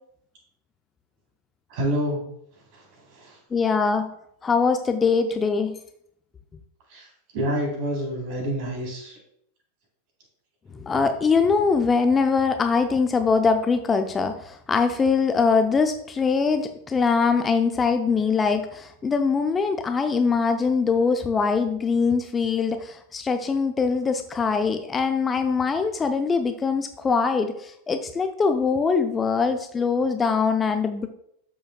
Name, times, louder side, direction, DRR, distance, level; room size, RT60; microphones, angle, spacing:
voice 1, 1.7-2.2 6.9-7.0 7.3-9.1, equal, 45° right, -1 dB, 3.7 m, -27 dB
voice 2, 3.5-4.1 4.4-5.8 10.8-31.1, left 5 dB, 15° left, 7 dB, 0.6 m, -22 dB
12.5 x 7.0 x 2.4 m, 0.71 s
figure-of-eight pair, 90°, 0 cm